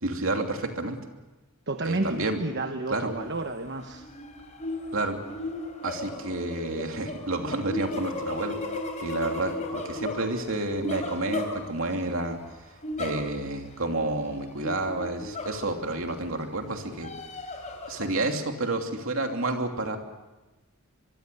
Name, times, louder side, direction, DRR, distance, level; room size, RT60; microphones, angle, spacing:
voice 1, 0.0-1.0 1.8-2.4 2.9-3.1 4.9-5.2 5.8-8.6 9.0-12.4 13.0-17.1 17.9-20.0, right 2 dB, 65° right, 4 dB, 2.9 m, -30 dB
voice 2, 1.7-4.1, right 2 dB, 50° right, 6 dB, 1.1 m, -31 dB
sound 1, 3.1-3.4 3.8-12.1 12.8-13.6 13.9-14.0 14.6-16.0 16.6-18.1, left 2 dB, 35° left, 3.7 m, -35 dB
24.5 x 23.0 x 6.9 m, 1.1 s
head